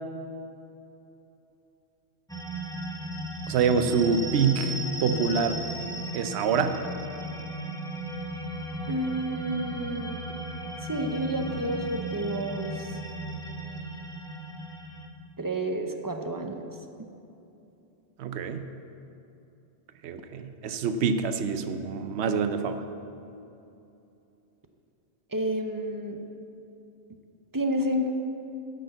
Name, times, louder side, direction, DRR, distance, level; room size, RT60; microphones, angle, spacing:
sound 1, 2.3-15.1, right 1 dB, 5° left, 0.9 m, -36 dB
voice 1, 3.5-5.5 6.1-6.8 18.2-18.6 20.0-22.8, right 5 dB, 75° right, 9 dB, 0.9 m, -26 dB
voice 2, 8.9-10.2 10.8-13.0 15.4-16.7 25.3-26.2 27.5-28.1, right 1 dB, 25° right, 4 dB, 0.6 m, -30 dB
9.9 x 6.6 x 7.9 m, 2.8 s
omnidirectional pair, 1.1 m